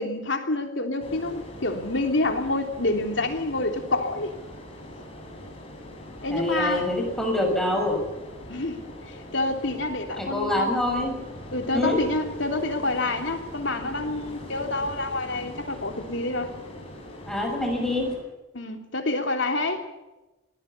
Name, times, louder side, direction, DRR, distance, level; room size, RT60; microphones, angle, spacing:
voice 1, 0.0-4.3 6.2-6.9 8.5-10.7 11.5-16.5 18.5-19.8, left 2 dB, 65° left, 4 dB, 3.2 m, -27 dB
sound 1, 1.0-18.2, left 1 dB, 30° left, 7.1 m, -42 dB
voice 2, 6.3-8.0 10.2-11.1 11.7-12.0 17.3-18.1, left 1 dB, ahead, 1 dB, 6.5 m, -25 dB
26.0 x 20.0 x 5.7 m, 1.1 s
head